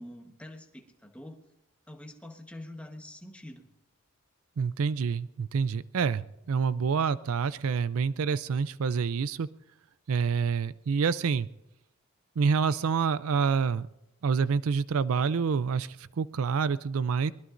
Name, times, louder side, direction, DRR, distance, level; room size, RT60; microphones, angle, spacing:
voice 1, 0.0-1.4 1.9-3.7, left 1 dB, 5° left, 3 dB, 1.2 m, -45 dB
voice 2, 4.6-9.5 10.1-11.5 12.4-13.9 14.2-17.3, right 5 dB, 75° right, 17 dB, 0.4 m, -27 dB
23.5 x 20.0 x 2.6 m, 0.89 s
head